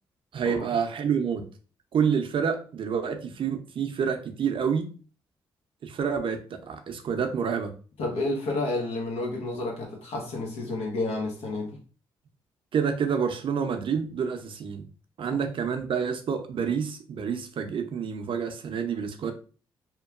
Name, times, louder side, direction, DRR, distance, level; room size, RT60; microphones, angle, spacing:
voice 1, 0.3-1.5 1.9-4.9 5.8-7.7 12.7-14.9 15.2-19.3, right 6 dB, 60° right, 0.5 m, -28 dB
voice 2, 8.0-11.8 15.3-15.4, left 2 dB, 80° left, 0.9 m, -30 dB
2.9 x 2.3 x 2.3 m
supercardioid pair, 55°, 10 cm